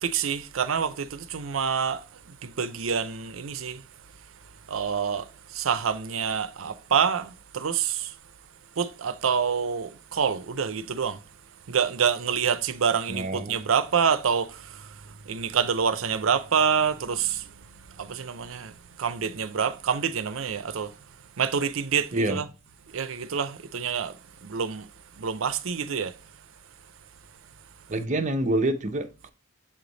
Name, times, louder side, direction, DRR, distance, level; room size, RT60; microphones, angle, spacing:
voice 1, 0.0-3.8 4.7-8.1 8.8-11.2 11.7-20.9 21.4-22.5 22.9-24.9 25.2-26.1, right 6 dB, 75° right, 0.6 m, -27 dB
voice 2, 13.1-13.6 22.1-22.4 27.9-29.3, right 2 dB, 40° right, 0.7 m, -27 dB
7.5 x 3.3 x 3.9 m
head